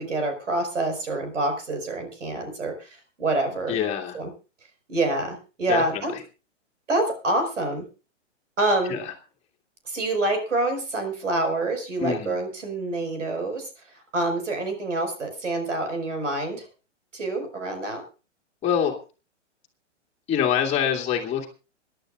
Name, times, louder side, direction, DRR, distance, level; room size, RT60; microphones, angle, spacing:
voice 1, 0.0-3.8 4.1-4.3 4.9-6.1 6.9-7.9 8.6-9.0 9.9-13.7 14.1-16.7 17.1-18.0, right 2 dB, 80° right, 5 dB, 5.3 m, -27 dB
voice 2, 3.7-4.2 5.7-6.2 8.9-9.1 12.0-12.3 18.6-18.9 20.3-21.5, left 8 dB, 15° left, -4 dB, 2.4 m, -25 dB
27.0 x 11.5 x 2.5 m, 0.33 s
hypercardioid pair, 120°, 36 cm